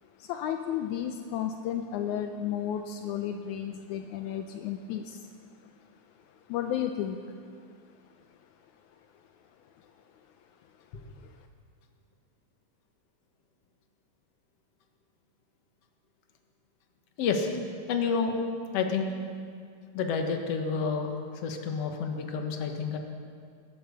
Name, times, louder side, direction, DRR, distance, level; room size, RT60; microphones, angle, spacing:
voice 1, 0.2-5.2 6.5-7.2, left 9 dB, 85° left, 6 dB, 1.7 m, -33 dB
voice 2, 17.2-17.6 17.9-18.4 18.7-19.1 19.9-21.1 21.4-23.0, left 5 dB, 55° left, 3 dB, 1.9 m, -29 dB
22.0 x 8.9 x 7.1 m, 2.2 s
omnidirectional pair, 4.2 m